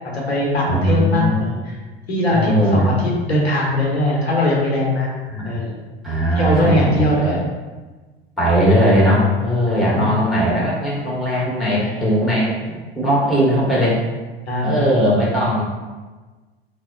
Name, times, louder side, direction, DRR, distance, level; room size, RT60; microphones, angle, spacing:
voice 1, 0.1-1.8 2.1-5.1 5.4-5.8 6.3-7.4 9.7-10.2 11.8-12.1 14.5-14.9, left 1 dB, 85° left, -2 dB, 0.7 m, -21 dB
voice 2, 0.7-1.5 2.3-2.9 5.3-5.6 6.0-7.3 8.4-14.0 14.6-15.6, equal, ahead, -6 dB, 0.8 m, -18 dB
3.1 x 2.0 x 2.5 m, 1.3 s
figure-of-eight pair, 75°, 31 cm